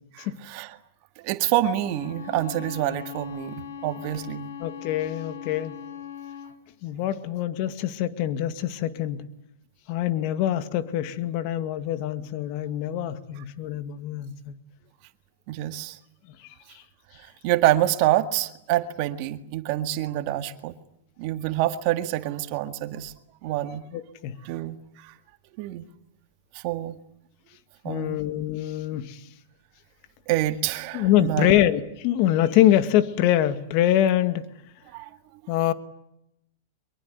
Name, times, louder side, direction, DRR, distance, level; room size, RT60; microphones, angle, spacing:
voice 1, 0.1-0.8 1.2-4.5 15.5-16.0 17.4-20.7 21.2-23.1 23.4-23.8 24.4-25.1 25.6-25.8 26.5-26.9 27.8-28.2 30.3-31.5 34.9-35.1, right 14 dB, 50° right, 1.9 m, -27 dB
Bowed string instrument, 1.8-6.6, left 8 dB, 80° left, 4.0 m, -39 dB
voice 2, 4.6-5.8 6.8-9.3 9.9-14.5 16.3-16.8 23.9-24.4 27.9-29.2 30.9-34.5 35.5-35.7, left 12 dB, 50° left, 2.0 m, -24 dB
24.0 x 23.0 x 9.7 m
hypercardioid pair, 135°, 0 cm